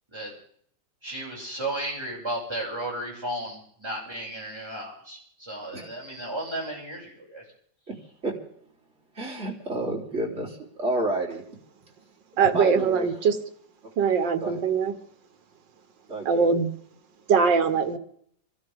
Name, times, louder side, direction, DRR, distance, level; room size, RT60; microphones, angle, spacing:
voice 1, 1.0-7.4, right 1 dB, 15° right, -5 dB, 7.1 m, -34 dB
voice 2, 9.1-11.4 12.4-13.1 14.4-14.6 16.1-16.5, right 1 dB, 35° right, -3 dB, 4.2 m, -30 dB
voice 3, 12.4-13.3 14.0-14.9 16.3-16.7 17.3-18.0, right 6 dB, 75° right, 9 dB, 2.0 m, -22 dB
28.0 x 13.0 x 3.7 m, 0.64 s
omnidirectional pair, 2.0 m